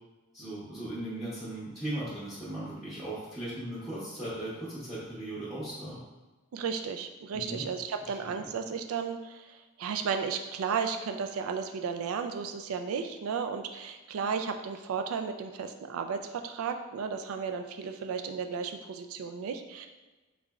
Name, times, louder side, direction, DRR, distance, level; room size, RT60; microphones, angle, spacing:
voice 1, 0.3-6.0 7.3-7.6 8.0-8.5, right 1 dB, ahead, -10 dB, 0.7 m, -38 dB
voice 2, 6.5-19.9, right 6 dB, 85° right, 6 dB, 0.3 m, -34 dB
3.6 x 3.1 x 2.3 m, 1.2 s
head